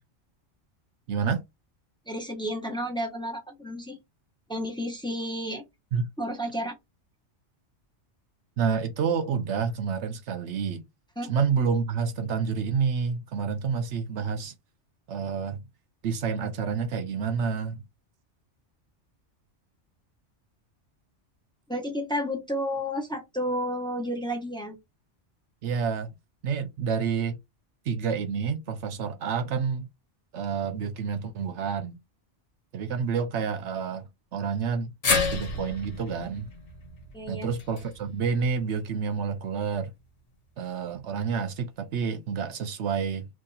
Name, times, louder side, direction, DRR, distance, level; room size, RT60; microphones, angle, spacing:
voice 1, 1.1-1.4 5.9-6.1 8.6-10.9 11.3-14.5 15.1-15.6 16.0-17.8 25.6-26.1 26.4-27.4 27.9-29.9 30.3-32.0 32.7-34.9 35.3-36.5 37.3-39.9 40.6-43.3, right 6 dB, 70° right, 0.9 m, -29 dB
voice 2, 2.1-4.0 4.5-5.6 6.2-6.8 11.2-11.3 21.7-24.8 37.1-37.5, equal, 5° left, 0.9 m, -31 dB
sound 1, 35.0-39.3 39.6-39.7 40.9-41.0, left 4 dB, 80° left, 1.3 m, -31 dB
2.8 x 2.8 x 3.9 m
omnidirectional pair, 1.2 m